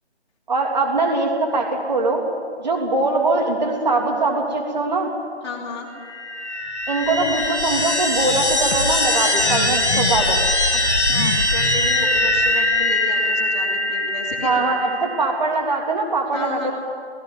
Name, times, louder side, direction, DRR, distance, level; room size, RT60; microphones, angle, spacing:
voice 1, 0.5-2.2 2.6-5.1 6.9-10.4 14.4-16.7, right 3 dB, 40° right, 1 dB, 3.2 m, -22 dB
voice 2, 5.4-5.9 10.7-14.8 16.3-16.7, left 4 dB, 25° left, -2 dB, 2.9 m, -33 dB
sound 1, 6.0-15.3, left 1 dB, 90° left, 2.5 m, -21 dB
17.5 x 16.5 x 9.3 m, 2.1 s
figure-of-eight pair, 160°, 34 cm